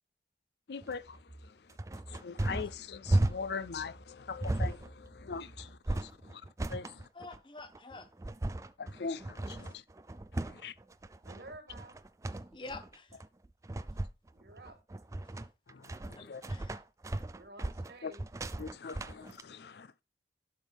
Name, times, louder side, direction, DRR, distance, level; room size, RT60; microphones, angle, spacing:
voice 1, 0.7-1.5 2.1-6.4 6.7-7.1 8.8-9.8 10.4-10.7 15.7-16.4 18.0-18.1 18.6-20.0, left 5 dB, 70° left, 0.5 m, -42 dB
sound 1, 0.8-19.4, right 1 dB, 15° right, 0.3 m, -36 dB
voice 2, 7.1-8.1 12.5-13.1 16.2-16.7, left 3 dB, 25° left, 0.9 m, -47 dB
voice 3, 11.2-12.0 14.3-14.8 17.3-18.3, right 2 dB, 70° right, 1.9 m, -51 dB
11.0 x 6.1 x 3.5 m
head